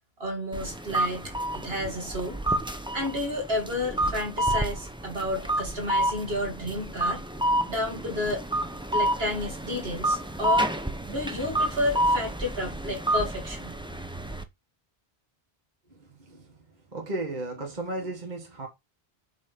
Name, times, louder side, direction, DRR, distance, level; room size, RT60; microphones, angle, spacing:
voice 1, 0.2-1.3 1.6-2.4 2.9-7.2 7.7-8.4 8.9-10.7 11.1-13.8, left 1 dB, 70° right, 2.5 m, -31 dB
sound 1, 0.5-14.4, right 1 dB, 5° right, 0.7 m, -29 dB
voice 2, 15.9-18.7, right 2 dB, 45° right, 1.7 m, -35 dB
7.4 x 3.6 x 6.0 m
omnidirectional pair, 1.0 m